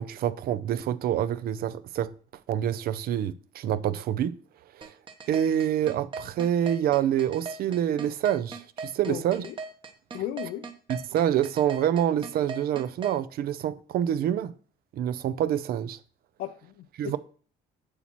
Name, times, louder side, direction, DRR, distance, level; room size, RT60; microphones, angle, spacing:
voice 1, 0.0-2.1 2.5-4.3 4.8-4.9 5.3-9.5 10.9-14.5 14.9-16.0 17.0-17.2, right 10 dB, 65° right, 0.6 m, -27 dB
sound 1, 4.8-13.2, right 4 dB, 30° right, 1.0 m, -38 dB
voice 2, 9.1-9.6 10.1-10.6 16.4-17.2, left 11 dB, 75° left, 0.6 m, -35 dB
8.1 x 7.2 x 3.0 m
cardioid pair, 110°, 17 cm